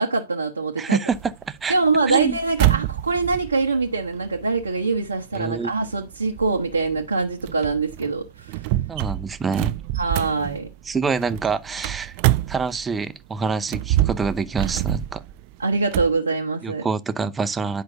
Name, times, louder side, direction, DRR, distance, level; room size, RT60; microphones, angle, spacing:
voice 1, 0.0-1.0 1.7-8.6 10.0-10.7 15.6-16.9, right 3 dB, 80° right, 0.9 m, -23 dB
voice 2, 0.8-1.7 2.1-2.4 5.3-5.7 8.9-9.7 10.8-12.2 12.5-15.2 16.6-17.8, right 5 dB, 15° right, 0.7 m, -26 dB
sound 1, 1.1-13.1 13.6-16.2, right 15 dB, 45° right, 0.3 m, -27 dB
10.0 x 5.6 x 2.6 m
figure-of-eight pair, 90°, 0 cm